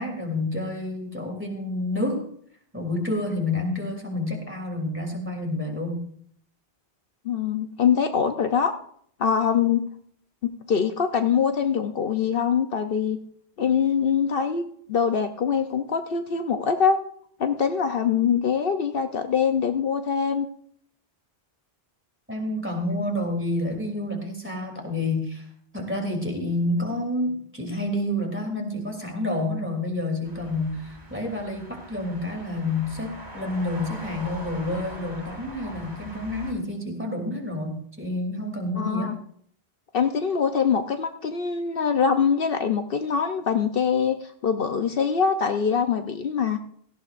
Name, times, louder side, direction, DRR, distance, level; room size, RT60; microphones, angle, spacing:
voice 1, 0.0-2.3 2.7-6.0 22.3-25.4 25.7-39.2, left 1 dB, 10° right, 1 dB, 3.0 m, -29 dB
voice 2, 7.2-8.7 9.2-9.9 10.4-13.2 13.6-14.6 14.9-17.0 17.4-20.5 38.8-39.1 39.9-46.6, left 6 dB, 65° left, 7 dB, 1.0 m, -23 dB
sound 1, 30.2-36.5, right 1 dB, 45° right, 3.2 m, -41 dB
17.5 x 15.0 x 2.6 m, 0.62 s
omnidirectional pair, 1.0 m